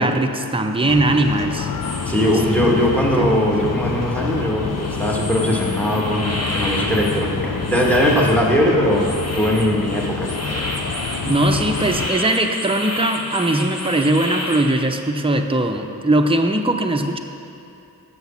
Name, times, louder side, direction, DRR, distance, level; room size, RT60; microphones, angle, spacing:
voice 1, 0.0-1.7 2.1-3.4 11.2-17.2, right 1 dB, 15° right, 4 dB, 0.6 m, -20 dB
sound 1, 0.8-12.1, left 5 dB, 55° left, 0.6 m, -27 dB
sound 2, 1.8-14.7, left 1 dB, 40° left, 1.3 m, -31 dB
voice 2, 2.0-10.6, equal, 5° left, -1 dB, 1.5 m, -20 dB
7.1 x 6.3 x 7.0 m, 2.7 s
wide cardioid pair, 45°, 37 cm